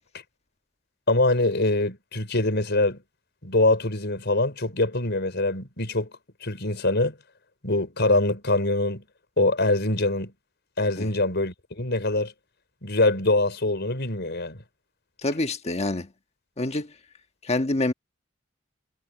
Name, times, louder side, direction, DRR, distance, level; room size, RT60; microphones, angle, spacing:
voice 1, 1.1-3.0 3.4-6.1 6.4-7.2 7.6-9.0 9.4-10.3 10.8-12.3 12.8-14.6, left 2 dB, 60° left, 5.7 m, -24 dB
voice 2, 15.2-16.1 16.6-16.9 17.4-17.9, left 2 dB, 35° left, 1.5 m, -26 dB
head